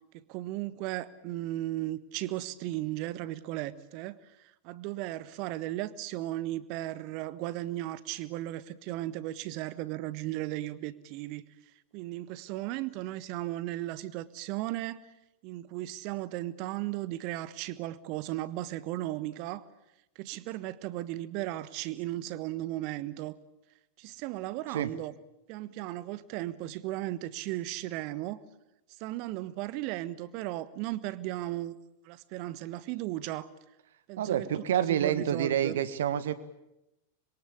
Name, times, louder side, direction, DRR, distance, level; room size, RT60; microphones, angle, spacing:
voice 1, 0.1-11.4 11.9-15.0 15.4-19.7 20.1-23.4 24.0-25.1 25.5-28.4 29.0-31.7 32.0-33.5 34.1-35.8, right 15 dB, 45° right, 17 dB, 1.3 m, -36 dB
voice 2, 34.2-36.3, right 10 dB, 60° right, 14 dB, 1.6 m, -28 dB
26.0 x 22.5 x 8.6 m, 0.89 s
figure-of-eight pair, 90°, 0 cm